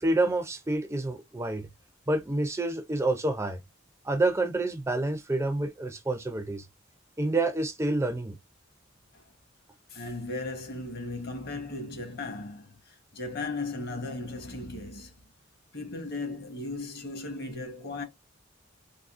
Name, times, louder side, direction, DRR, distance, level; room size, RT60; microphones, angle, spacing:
voice 1, 0.0-1.7 2.1-3.6 4.0-6.7 7.2-8.4, right 2 dB, 15° right, 0.4 m, -28 dB
voice 2, 9.9-15.1 15.7-18.0, left 2 dB, 50° left, 1.0 m, -36 dB
3.6 x 2.3 x 2.4 m
head